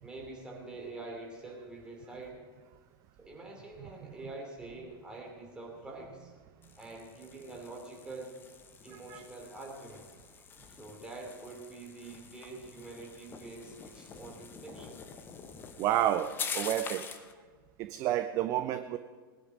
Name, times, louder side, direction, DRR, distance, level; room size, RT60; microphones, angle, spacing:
voice 1, 0.0-2.4 3.2-6.3 6.8-8.4 8.8-10.1 10.7-15.0, right 2 dB, 5° right, -1 dB, 3.1 m, -45 dB
sound 1, 6.6-17.3, left 6 dB, 15° left, 0.9 m, -45 dB
voice 2, 15.8-17.2 17.8-19.0, right 12 dB, 25° right, 10 dB, 0.5 m, -30 dB
19.5 x 10.5 x 5.0 m, 1.4 s
figure-of-eight pair, 105°, 12 cm